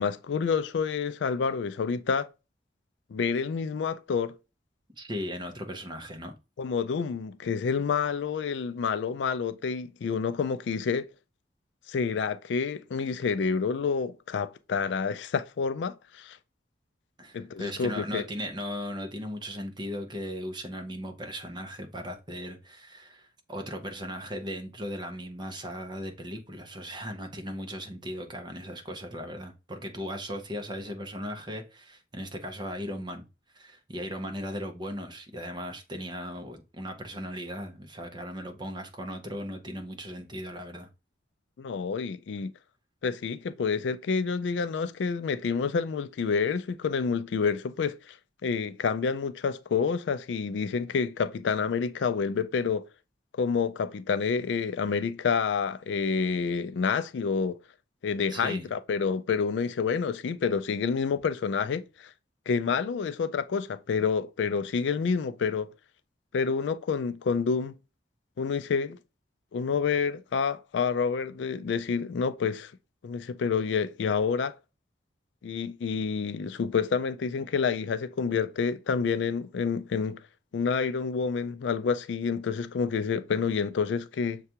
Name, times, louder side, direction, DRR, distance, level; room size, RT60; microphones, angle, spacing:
voice 1, 0.0-2.3 3.1-4.3 6.6-11.1 11.9-16.4 17.3-18.2 41.6-42.5 43.0-48.2 48.4-52.8 53.3-57.6 58.0-62.1 62.5-65.7 66.3-67.7 68.4-69.0 69.5-72.7 73.0-74.6 75.4-80.2 80.5-84.4, left 5 dB, 75° left, 0.4 m, -28 dB
voice 2, 5.0-6.3 17.2-33.3 33.5-40.9 58.3-58.7, equal, 25° right, 0.7 m, -37 dB
6.5 x 2.3 x 2.8 m
head